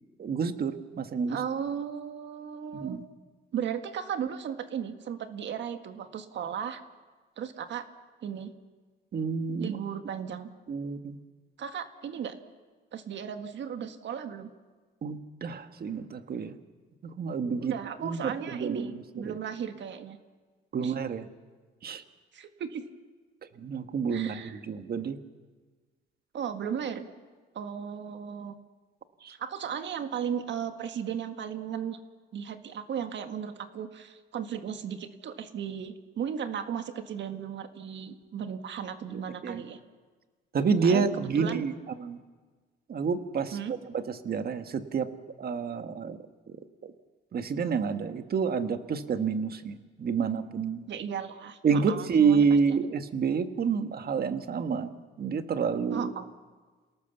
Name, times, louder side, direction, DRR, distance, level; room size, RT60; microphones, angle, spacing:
voice 1, 0.2-1.4 2.7-3.0 9.1-9.8 10.7-11.2 15.0-16.5 17.0-17.7 18.0-18.9 19.2-19.4 20.7-21.2 21.8-22.0 23.6-25.2 29.2-29.4 39.1-39.6 40.5-41.7 42.0-42.2 42.9-43.6 43.9-45.1 45.4-46.2 46.5-46.6 46.8-46.9 47.3-50.9 51.6-56.1, right 5 dB, 50° right, 8 dB, 1.5 m, -29 dB
voice 2, 1.3-3.0 3.5-6.8 7.4-7.9 8.2-8.5 9.6-10.5 11.6-12.4 12.9-14.5 17.6-20.2 20.8-20.9 22.3-22.8 24.1-24.6 26.3-27.1 27.5-28.6 29.4-32.0 32.3-39.8 40.8-41.6 43.5-43.7 50.9-52.5 55.9-56.3, right 8 dB, 65° right, 8 dB, 1.6 m, -35 dB
28.5 x 18.5 x 7.1 m, 1.4 s
cardioid pair, 90°, 20 cm